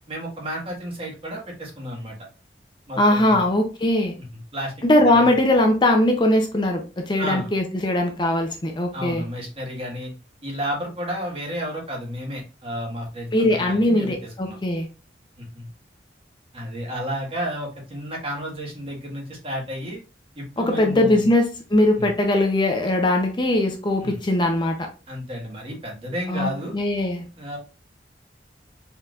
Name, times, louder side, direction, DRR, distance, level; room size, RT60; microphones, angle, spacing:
voice 1, 0.1-2.2 2.9-3.4 4.5-4.7 5.1-5.3 7.2-7.5 8.9-10.1 10.4-14.1 14.4-14.6 15.4-15.7 16.5-20.0 20.4-21.2 21.9-22.1 24.0-24.2 25.1-26.7 27.4-27.6, equal, 35° right, -1 dB, 1.5 m, -32 dB
voice 2, 3.0-4.1 4.8-9.2 13.3-14.9 20.6-24.9 26.3-27.2, left 1 dB, 25° left, 3 dB, 0.6 m, -20 dB
4.4 x 3.9 x 2.4 m, 0.32 s
head